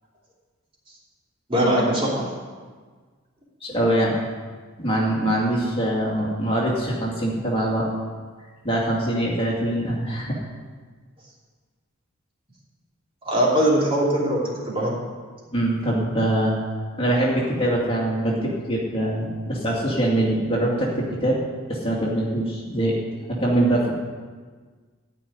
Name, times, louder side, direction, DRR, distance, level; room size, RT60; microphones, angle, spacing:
voice 1, 1.5-2.2 13.2-14.9, right 1 dB, 25° right, -5 dB, 3.0 m, -21 dB
voice 2, 3.6-4.2 4.8-7.9 8.6-10.3 15.5-16.6 17.0-21.4 21.7-23.0 23.3-23.9, right 1 dB, 25° left, -4 dB, 2.4 m, -23 dB
14.0 x 5.5 x 9.5 m, 1.5 s
head